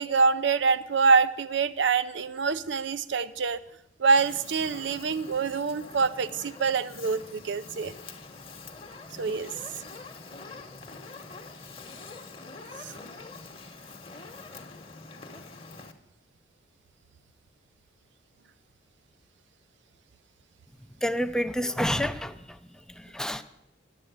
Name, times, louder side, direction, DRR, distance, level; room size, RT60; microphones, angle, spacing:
voice 1, 0.0-3.6 4.0-7.9 9.2-9.5 12.8-12.9, right 5 dB, 65° right, 15 dB, 0.6 m, -25 dB
Fire, 4.2-15.9, left 3 dB, 30° left, 1.1 m, -45 dB
voice 2, 21.0-22.6 22.9-23.4, equal, 5° left, 10 dB, 0.5 m, -29 dB
11.5 x 7.6 x 8.1 m, 0.84 s
head